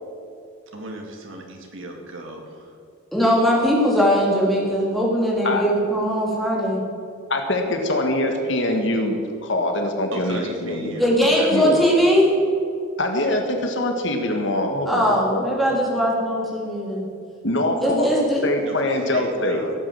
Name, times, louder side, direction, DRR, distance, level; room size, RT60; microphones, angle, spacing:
voice 1, 0.7-2.8 10.1-11.5 18.6-19.7, right 1 dB, 75° right, 1 dB, 2.6 m, -36 dB
voice 2, 3.1-6.8 11.0-12.3 14.9-17.1 17.8-18.4, equal, ahead, -4 dB, 3.3 m, -20 dB
voice 3, 7.3-11.0 11.5-11.8 13.0-15.7 17.4-18.1 18.4-19.6, left 1 dB, 60° left, 4 dB, 1.7 m, -24 dB
17.0 x 8.8 x 8.0 m, 2.4 s
head